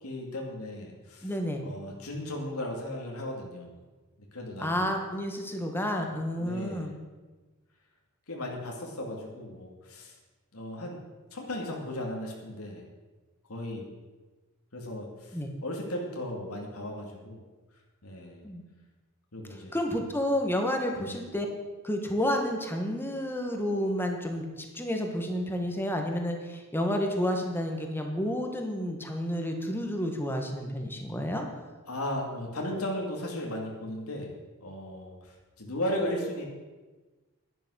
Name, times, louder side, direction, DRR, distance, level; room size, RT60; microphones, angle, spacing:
voice 1, 0.0-1.3 1.6-3.7 4.3-4.9 6.4-6.9 8.3-10.1 10.5-11.0 11.3-12.9 13.5-13.9 14.7-17.4 18.0-18.4 19.3-19.7 20.9-21.2 31.9-34.3 34.6-36.4, left 1 dB, 80° left, 0 dB, 2.5 m, -36 dB
voice 2, 1.2-1.6 4.6-6.9 15.3-15.5 18.4-18.6 19.7-21.5 21.8-31.5, equal, 10° left, 3 dB, 1.8 m, -30 dB
11.0 x 11.0 x 6.5 m, 1.3 s
head